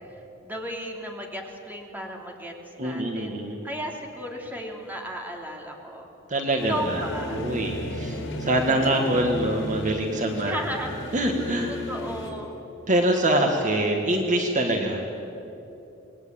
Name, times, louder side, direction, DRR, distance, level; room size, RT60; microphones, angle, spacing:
voice 1, 0.4-3.4 3.6-6.1 6.7-7.4 10.4-11.0 11.7-12.5, equal, 10° right, 1 dB, 3.1 m, -34 dB
voice 2, 2.8-3.6 6.3-7.0 7.3-10.6 11.1-11.7 12.9-15.0, right 1 dB, 40° right, 3 dB, 2.0 m, -24 dB
sound 1, 6.6-12.3, equal, 65° left, 4.3 m, -34 dB
27.0 x 21.0 x 8.9 m, 2.9 s
head